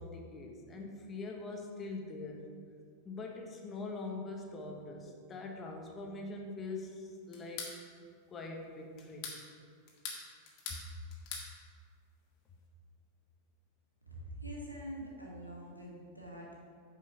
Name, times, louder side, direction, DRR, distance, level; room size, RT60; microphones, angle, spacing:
voice 1, 0.0-2.4 3.0-7.6 8.3-9.3 10.7-10.8, left 3 dB, 20° left, 1 dB, 1.4 m, -43 dB
sound 1, 7.3-7.8 9.0-9.4 9.9-10.8 11.1-11.5, left 5 dB, 40° left, 1.9 m, -42 dB
voice 2, 14.1-16.6, right 1 dB, 90° right, -4 dB, 2.1 m, -45 dB
9.3 x 5.4 x 5.7 m, 2.1 s
figure-of-eight pair, 90°, 0 cm